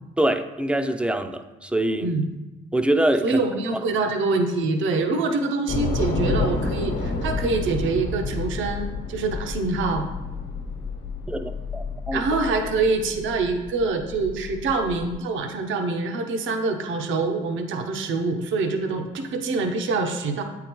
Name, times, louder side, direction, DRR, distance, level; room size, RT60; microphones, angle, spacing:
voice 1, 0.2-2.1 2.7-3.4 11.3-12.4, right 1 dB, 5° right, 8 dB, 0.4 m, -24 dB
voice 2, 3.2-10.1 12.1-20.4, right 3 dB, 75° right, 5 dB, 0.7 m, -25 dB
Train / Subway metro underground, 5.7-15.1, left 3 dB, 65° left, 1.0 m, -30 dB
8.5 x 3.8 x 3.0 m, 1.1 s
cardioid pair, 90°, 20 cm